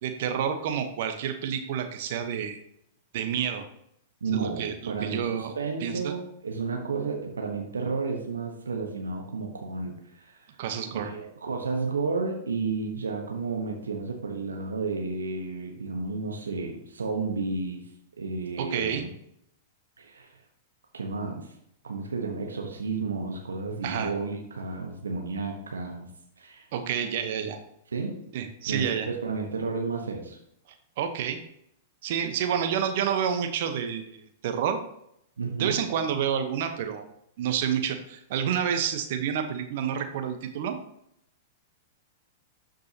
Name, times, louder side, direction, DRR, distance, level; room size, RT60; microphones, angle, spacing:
voice 1, 0.0-2.6 3.1-3.6 4.3-5.5 5.8-6.1 10.6-11.1 18.6-19.0 23.8-24.1 26.7-27.6 28.3-29.1 31.0-31.4 32.0-34.8 35.6-37.0 37.4-40.8, right 8 dB, 60° right, 7 dB, 1.0 m, -29 dB
voice 2, 4.2-10.6 10.9-17.9 18.2-19.1 20.0-20.4 20.9-21.5 21.8-26.1 26.4-26.7 27.9-28.2 28.6-30.4 35.4-35.8, right 4 dB, 85° right, 2 dB, 1.1 m, -32 dB
12.0 x 5.3 x 2.9 m, 0.74 s
hypercardioid pair, 105°, 0 cm